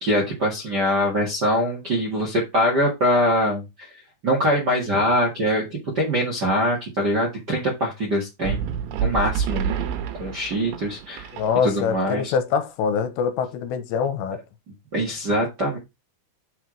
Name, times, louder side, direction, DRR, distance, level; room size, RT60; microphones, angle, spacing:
voice 1, 0.0-5.6 5.9-8.7 9.0-11.3 11.6-12.3 14.9-15.8, equal, 45° right, 1.3 m, -23 dB
sound 1, 8.5-12.0, right 8 dB, 85° right, 3.2 m, -28 dB
voice 2, 11.3-14.4, left 6 dB, 85° left, 3.1 m, -24 dB
6.9 x 4.7 x 5.1 m
omnidirectional pair, 5.0 m